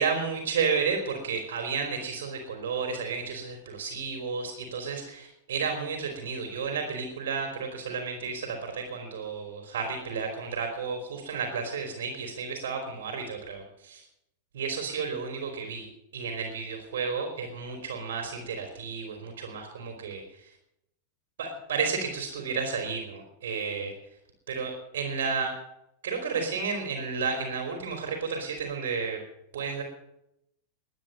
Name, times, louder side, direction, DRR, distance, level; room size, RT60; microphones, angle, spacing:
voice 1, 0.0-14.0 14.5-15.9 16.1-20.5 21.4-23.9 24.5-25.5 26.0-29.2 29.5-29.8, right 5 dB, 60° right, 3 dB, 3.5 m, -32 dB
22.0 x 9.3 x 5.5 m, 0.79 s
figure-of-eight pair, 90°, 0 cm